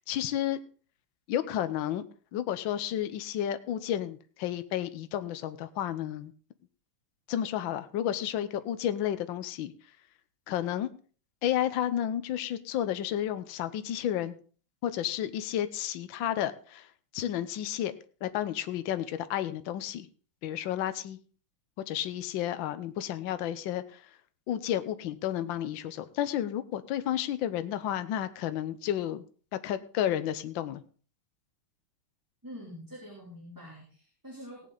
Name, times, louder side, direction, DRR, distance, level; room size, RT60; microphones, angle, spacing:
voice 1, 0.1-0.6 1.3-2.0 2.3-6.3 7.3-9.7 10.5-10.9 11.4-14.4 14.8-16.9 17.1-17.9 18.2-20.1 20.4-21.2 21.9-24.0 24.5-29.2 29.5-30.8, left 11 dB, 65° left, 11 dB, 1.5 m, -31 dB
voice 2, 32.4-34.6, equal, 10° right, -3 dB, 3.1 m, -45 dB
17.5 x 8.6 x 3.9 m, 0.40 s
omnidirectional pair, 2.4 m